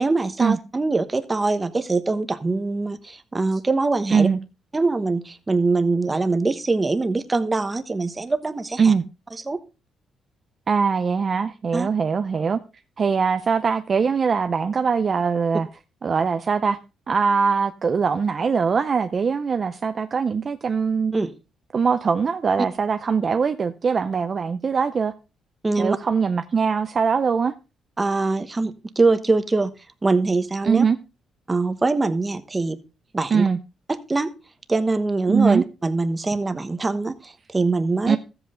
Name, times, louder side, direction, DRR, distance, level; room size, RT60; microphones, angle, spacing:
voice 1, 0.0-4.3 4.7-8.9 9.5-9.6 11.7-11.9 21.1-21.3 25.6-26.0 28.0-29.7 30.0-30.8 31.5-32.8 33.1-33.4 33.9-34.3 34.7-38.2, right 3 dB, 20° right, 1.1 m, -23 dB
voice 2, 10.7-12.6 13.0-15.7 16.0-16.8 17.1-21.1 21.7-25.1 25.8-27.5 30.6-31.0 33.3-33.6 35.3-35.6 38.1-38.2, right 5 dB, 40° right, 0.5 m, -21 dB
13.5 x 7.9 x 3.7 m
cardioid pair, 90°, 0 cm